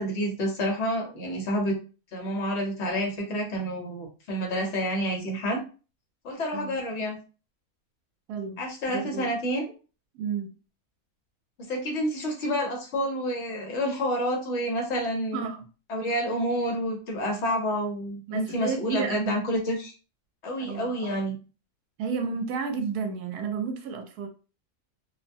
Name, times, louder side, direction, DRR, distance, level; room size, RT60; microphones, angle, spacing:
voice 1, 0.0-1.8 2.1-5.6 6.2-7.2 8.6-9.6 11.6-15.4 15.9-19.9 20.4-21.3, equal, 55° left, 1.1 m, -29 dB
voice 2, 8.3-8.6 8.9-9.3 10.1-10.6 15.3-15.6 18.3-19.5 20.6-21.1 22.0-24.3, right 5 dB, 80° right, 1.1 m, -32 dB
2.7 x 2.1 x 2.5 m
omnidirectional pair, 1.6 m